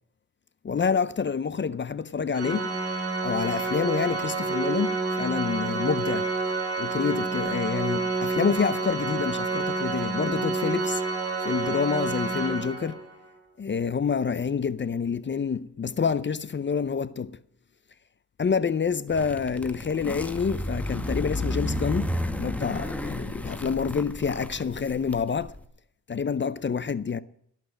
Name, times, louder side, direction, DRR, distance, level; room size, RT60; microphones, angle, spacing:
voice 1, 0.6-2.7 3.2-6.3 6.8-11.0 11.4-13.0 13.6-17.4 18.4-25.5 26.1-27.2, left 6 dB, 30° left, 0.6 m, -27 dB
Organ, 2.3-13.2, right 3 dB, 35° right, 2.4 m, -29 dB
sound 1, 19.1-25.6, left 1 dB, 5° left, 1.0 m, -32 dB
17.0 x 6.0 x 8.9 m
cardioid pair, 100°, 40 cm